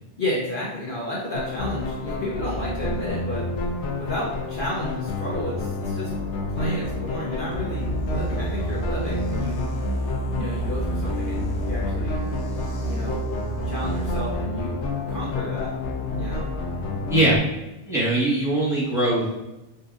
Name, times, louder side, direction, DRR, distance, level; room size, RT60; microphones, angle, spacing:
voice 1, 0.2-3.4 4.0-6.1 6.5-9.7 10.3-12.2 12.8-13.2 13.6-14.8 15.1-15.7 16.2-16.4, left 1 dB, 50° left, -6 dB, 0.9 m, -31 dB
sound 1, 1.3-17.4, left 2 dB, 75° left, 0.9 m, -29 dB
sound 2, 7.5-14.4, right 3 dB, 35° left, 0.4 m, -30 dB
voice 2, 17.9-19.4, right 1 dB, 5° right, -7 dB, 1.2 m, -21 dB
5.4 x 2.7 x 2.4 m, 0.96 s
omnidirectional pair, 1.2 m